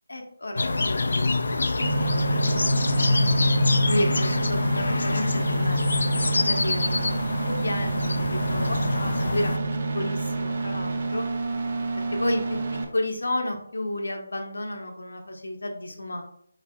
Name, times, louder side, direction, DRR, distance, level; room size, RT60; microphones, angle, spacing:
voice 1, 0.1-1.2 1.5-1.7 2.0-3.4 3.9-5.8 6.1-9.5 9.9-11.2 12.0-12.6 12.9-16.2, left 1 dB, 90° left, 3 dB, 1.0 m, -32 dB
sound 1, 0.6-9.6, left 2 dB, 60° left, 0.3 m, -25 dB
sound 2, 1.8-12.8, right 3 dB, 35° right, 0.6 m, -28 dB
4.6 x 4.6 x 2.3 m, 0.68 s
figure-of-eight pair, 175°, 0 cm